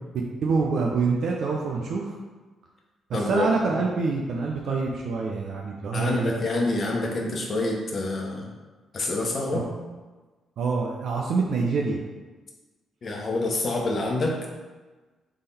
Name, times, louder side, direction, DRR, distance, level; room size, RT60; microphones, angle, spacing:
voice 1, 0.4-2.1 3.1-6.3 9.5-9.7 10.6-12.0, right 4 dB, 65° right, -1 dB, 0.5 m, -26 dB
voice 2, 3.1-3.8 5.9-8.5 8.9-9.7 13.0-14.4, left 2 dB, 50° left, 0 dB, 1.0 m, -27 dB
3.5 x 3.5 x 4.1 m, 1.3 s
hypercardioid pair, 45°, 0 cm